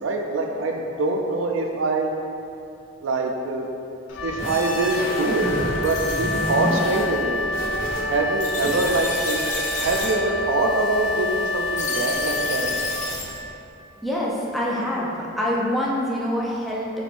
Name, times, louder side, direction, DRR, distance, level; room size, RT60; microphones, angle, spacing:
voice 1, 0.0-2.1 3.0-3.7 4.2-7.5 8.1-9.5 9.8-12.7, right 2 dB, 75° right, 2 dB, 0.4 m, -24 dB
Wind instrument woodwind instrument, 4.1-13.6, left 2 dB, 65° left, 0.4 m, -28 dB
sound 1, 4.2-5.8 6.1-8.0 8.3-9.0 9.5-9.6 9.8-10.0, left 1 dB, 85° left, 1.1 m, -29 dB
sound 2, 5.3-13.4, left 2 dB, 40° left, 0.7 m, -34 dB
voice 2, 14.0-16.9, left 1 dB, ahead, -5 dB, 0.5 m, -25 dB
6.1 x 3.4 x 2.5 m, 2.8 s
head